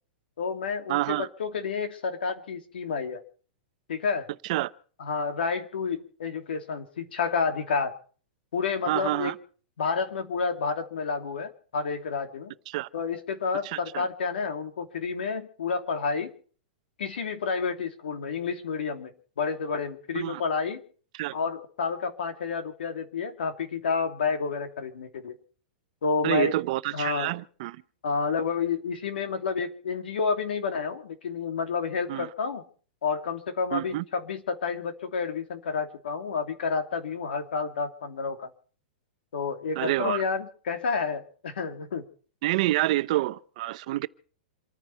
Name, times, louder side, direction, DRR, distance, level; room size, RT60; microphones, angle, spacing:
voice 1, 0.4-3.2 3.9-4.3 5.0-7.9 8.5-9.3 9.8-12.5 12.9-16.3 17.0-20.8 21.3-25.4 26.0-26.6 26.9-27.3 28.0-32.6 33.0-38.5 39.3-42.0, left 5 dB, 85° left, 2.7 m, -30 dB
voice 2, 0.9-1.3 4.4-4.7 8.9-9.4 12.7-12.9 13.6-14.1 20.1-20.4 21.1-21.4 26.2-27.8 32.1-32.3 33.7-34.0 39.8-40.2 42.4-44.1, right 17 dB, 45° right, 0.7 m, -28 dB
27.5 x 10.0 x 4.6 m
hypercardioid pair, 160°, 5 cm